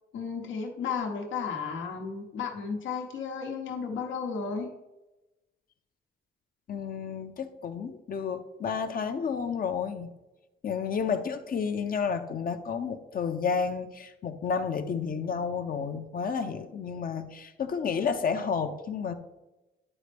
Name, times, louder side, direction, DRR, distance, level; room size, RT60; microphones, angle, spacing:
voice 1, 0.1-4.7, left 5 dB, 75° left, 2 dB, 1.1 m, -33 dB
voice 2, 6.7-10.1 10.6-19.1, left 6 dB, 45° left, 7 dB, 0.7 m, -31 dB
11.0 x 4.2 x 3.4 m, 1.0 s
cardioid pair, 90°, 20 cm